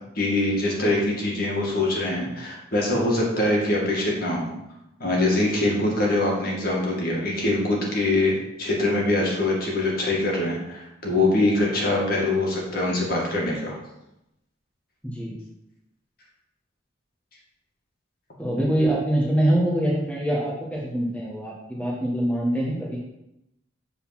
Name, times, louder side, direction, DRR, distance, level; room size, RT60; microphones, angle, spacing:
voice 1, 0.2-4.5 5.0-13.8, left 2 dB, 45° left, -2 dB, 2.0 m, -23 dB
voice 2, 18.4-23.0, right 1 dB, 5° left, -5 dB, 1.5 m, -24 dB
8.2 x 4.1 x 5.9 m, 0.87 s
head